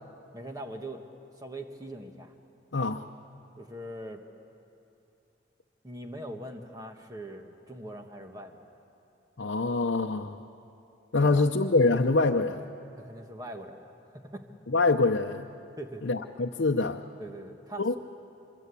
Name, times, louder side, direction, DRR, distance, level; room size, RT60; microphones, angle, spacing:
voice 1, 0.3-1.0 1.4-2.3 3.6-4.2 5.8-8.7 11.2-11.4 13.0-14.5 15.8-16.0 17.2-18.0, right 1 dB, 20° right, 4 dB, 1.5 m, -42 dB
voice 2, 2.7-3.1 9.4-10.4 11.1-12.6 14.7-15.5 16.0-17.0 17.8-17.9, left 3 dB, 75° left, 2 dB, 0.7 m, -25 dB
26.0 x 22.0 x 8.4 m, 2.8 s
head